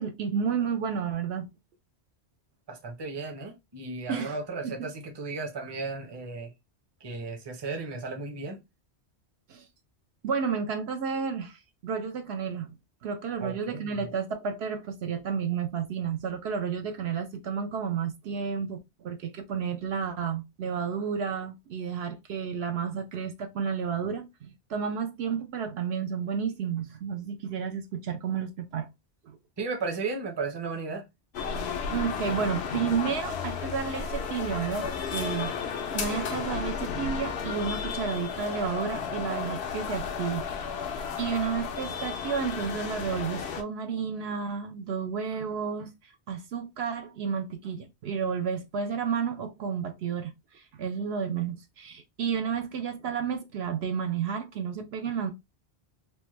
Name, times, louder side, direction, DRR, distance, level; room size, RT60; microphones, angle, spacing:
voice 1, 0.0-1.5 4.1-4.4 4.6-4.9 9.5-9.7 10.2-12.7 13.0-28.9 29.2-29.4 31.9-35.5 35.9-40.5 41.2-45.9 46.3-55.3, right 6 dB, 70° right, 0.8 m, -31 dB
voice 2, 2.7-6.5 7.0-8.6 13.4-14.0 29.6-31.1, right 3 dB, 30° right, 0.6 m, -35 dB
sound 1, 31.3-43.6, left 6 dB, 70° left, 0.9 m, -33 dB
3.3 x 2.1 x 3.0 m
omnidirectional pair, 1.1 m